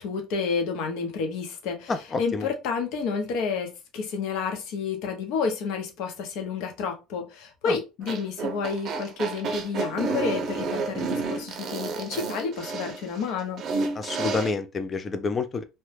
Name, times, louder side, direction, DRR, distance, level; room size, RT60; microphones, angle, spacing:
voice 1, 0.0-1.9 2.2-13.7, left 5 dB, 70° left, 0.9 m, -30 dB
voice 2, 1.9-2.5 7.7-7.8 14.0-15.6, left 4 dB, 25° left, 0.4 m, -28 dB
sound 1, 8.0-14.5, right 4 dB, 45° right, 0.6 m, -30 dB
2.9 x 2.2 x 3.2 m
cardioid pair, 130°, 0 cm